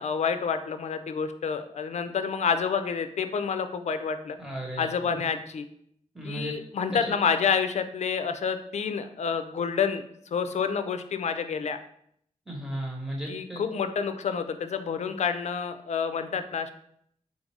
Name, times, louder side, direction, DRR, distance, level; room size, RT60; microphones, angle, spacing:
voice 1, 0.0-4.4 4.8-5.6 6.2-10.0 10.3-11.8 13.3-16.7, left 6 dB, 60° left, 9 dB, 0.4 m, -28 dB
voice 2, 4.4-5.2 6.1-6.5 7.1-7.2 12.5-13.6, right 1 dB, 5° right, -2 dB, 1.3 m, -35 dB
4.0 x 2.6 x 4.7 m, 0.68 s
wide cardioid pair, 95°, 13 cm